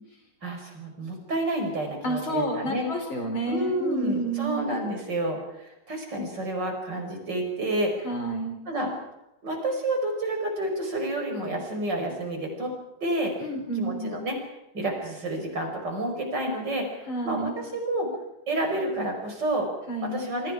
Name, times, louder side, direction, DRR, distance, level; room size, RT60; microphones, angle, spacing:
voice 1, 0.4-2.9 3.4-7.9 8.7-8.9 9.4-12.7 13.0-13.3 13.8-14.4 14.7-18.1 18.5-19.7 20.0-20.5, right 1 dB, 60° right, 3 dB, 5.6 m, -29 dB
voice 2, 2.0-4.7 8.0-8.6 13.4-14.2 17.1-17.6 19.9-20.2, right 1 dB, 80° left, 3 dB, 5.6 m, -30 dB
28.5 x 24.0 x 4.9 m, 0.87 s
omnidirectional pair, 2.2 m